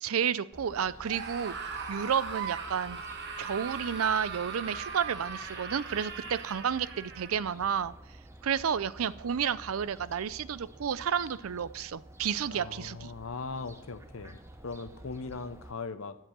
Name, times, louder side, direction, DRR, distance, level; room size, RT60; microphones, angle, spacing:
voice 1, 0.0-3.0 3.4-7.9 8.4-13.1, right 7 dB, 75° right, 17 dB, 0.5 m, -31 dB
Fowl, 0.5-15.7, right 1 dB, 15° right, 0.8 m, -51 dB
Screaming, 1.0-7.5, right 5 dB, 55° right, 1.3 m, -39 dB
voice 2, 12.5-14.4 14.6-16.2, left 4 dB, 70° left, 11 dB, 0.8 m, -39 dB
11.5 x 7.6 x 6.2 m, 0.92 s
head